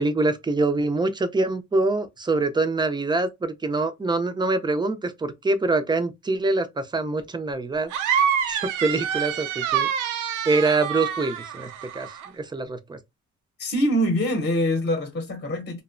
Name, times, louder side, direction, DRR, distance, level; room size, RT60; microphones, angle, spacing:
voice 1, 0.0-7.9 8.5-9.9 10.5-12.1 12.4-13.0, right 3 dB, 15° right, 0.4 m, -25 dB
sound 1, 7.9-12.3, right 8 dB, 85° right, 0.5 m, -26 dB
voice 2, 13.6-15.8, equal, 35° left, 0.8 m, -24 dB
2.6 x 2.1 x 2.5 m
cardioid pair, 90°, 30 cm